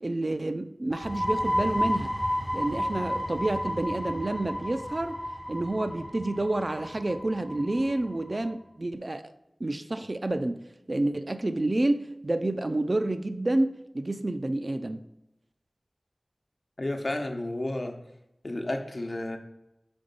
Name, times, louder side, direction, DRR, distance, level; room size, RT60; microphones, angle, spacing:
voice 1, 0.0-2.1 2.5-5.2 5.5-9.3 9.6-10.6 10.9-15.0, right 2 dB, 50° right, 10 dB, 0.5 m, -29 dB
sound 1, 0.9-8.4, equal, ahead, 0.6 m, -32 dB
voice 2, 16.8-18.0 18.4-19.4, left 1 dB, 55° left, 4 dB, 0.9 m, -31 dB
5.3 x 3.9 x 5.3 m, 0.90 s
wide cardioid pair, 40°, 0 cm